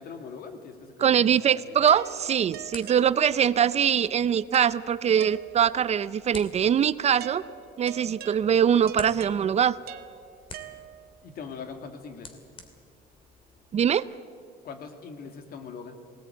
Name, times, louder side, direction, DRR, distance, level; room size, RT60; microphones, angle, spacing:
voice 1, 0.0-1.8 11.2-12.4 14.6-16.0, left 5 dB, 60° left, 6 dB, 2.4 m, -41 dB
voice 2, 1.0-7.4 7.8-9.8 13.7-14.0, right 8 dB, 40° right, 17 dB, 0.5 m, -22 dB
sound 1, 1.8-14.0, left 3 dB, 30° left, 2.4 m, -50 dB
sound 2, 1.9-3.7 4.5-6.0 7.2-11.3, right 11 dB, 70° right, 1.1 m, -44 dB
19.0 x 18.0 x 9.2 m, 2.2 s
cardioid pair, 110°, 17 cm